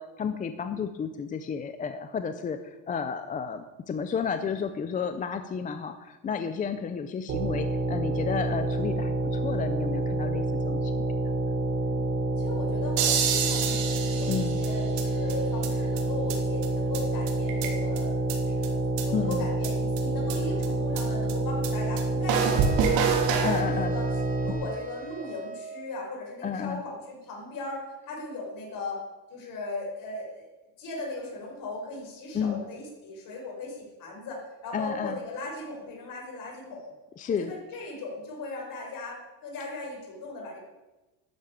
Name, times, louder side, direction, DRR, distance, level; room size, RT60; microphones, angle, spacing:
voice 1, 0.0-11.3 14.3-14.6 19.1-19.5 23.4-23.9 26.4-26.8 32.3-32.6 34.7-35.2 37.2-37.5, left 6 dB, 20° left, 9 dB, 0.5 m, -32 dB
sound 1, 7.3-24.5, right 1 dB, 35° right, 1.7 m, -28 dB
voice 2, 11.6-12.0 12.4-23.0 23.4-30.5 30.8-36.9 37.3-40.6, left 2 dB, 50° left, 0 dB, 5.5 m, -38 dB
sound 2, 13.0-15.0 15.3-15.4 15.6-15.7 16.0-16.1 16.3-16.4 16.6-16.7 16.9-17.0 17.3-18.0 18.3-18.4 18.6-18.7 19.0-19.1 19.3-19.4 19.6-19.7 20.0-20.1 20.3-20.4 20.6-20.7 21.0-21.1 21.3-21.4 21.6-21.7 22.0-22.1 22.3-23.6, right 7 dB, 75° right, 3.2 m, -27 dB
sound 3, 22.3-26.0, right 6 dB, 20° right, 1.1 m, -42 dB
12.5 x 10.5 x 8.7 m, 1.1 s
cardioid pair, 170°, 44 cm